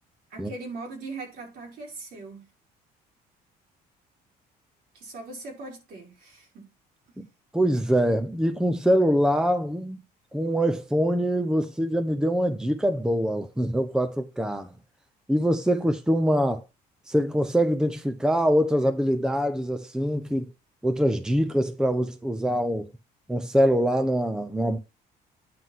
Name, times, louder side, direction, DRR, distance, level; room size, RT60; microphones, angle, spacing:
voice 1, 0.3-2.5 4.9-6.7, right 3 dB, 65° right, 4.8 m, -40 dB
voice 2, 7.5-10.0 10.3-14.7 15.3-16.6 17.1-20.5 20.8-22.9 23.3-24.8, equal, 5° right, 0.8 m, -24 dB
9.4 x 3.8 x 6.2 m
cardioid pair, 110°, 17 cm